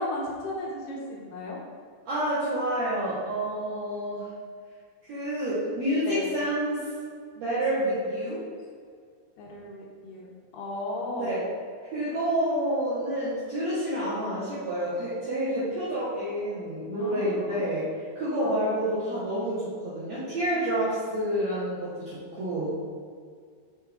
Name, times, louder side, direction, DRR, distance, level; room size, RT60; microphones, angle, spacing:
voice 1, 0.0-1.6 6.1-6.3 7.5-7.6 9.4-11.5 17.0-17.7 18.4-18.5, left 1 dB, 75° left, -3 dB, 2.8 m, -35 dB
voice 2, 2.0-4.3 5.1-6.9 7.4-8.4 11.1-11.4 11.9-17.8 18.1-22.8, right 1 dB, 80° right, -9 dB, 1.5 m, -28 dB
6.5 x 5.8 x 3.5 m, 2.1 s
omnidirectional pair, 5.0 m